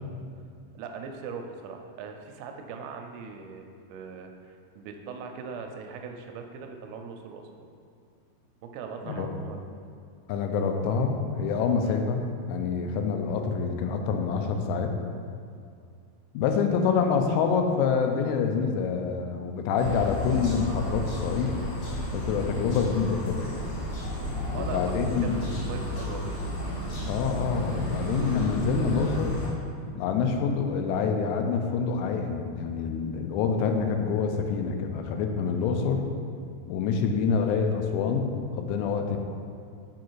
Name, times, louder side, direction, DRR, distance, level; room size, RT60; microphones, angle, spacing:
voice 1, 0.8-7.7 8.6-9.7 11.8-12.0 24.5-26.4, right 5 dB, 85° right, 4 dB, 2.4 m, -40 dB
voice 2, 10.3-12.2 12.5-14.9 16.3-21.5 22.1-23.6 24.5-25.5 27.1-29.4 30.0-36.0 36.7-39.2, left 5 dB, 85° left, 4 dB, 2.6 m, -26 dB
sound 1, 19.8-29.5, left 1 dB, 65° left, 1.6 m, -32 dB
6.3 x 4.8 x 4.5 m, 2.3 s
omnidirectional pair, 5.1 m